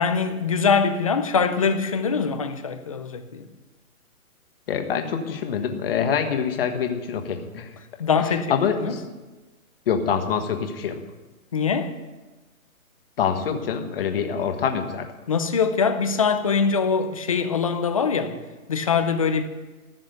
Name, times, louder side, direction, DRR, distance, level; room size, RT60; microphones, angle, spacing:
voice 1, 0.0-3.5 8.0-9.0 11.5-12.0 15.3-18.4 18.7-19.4, left 5 dB, 25° left, 0.6 m, -23 dB
voice 2, 4.7-7.7 8.5-9.0 9.9-10.9 13.2-15.1, left 7 dB, 40° left, 1.6 m, -25 dB
15.0 x 6.1 x 9.2 m
hypercardioid pair, 160°, 44 cm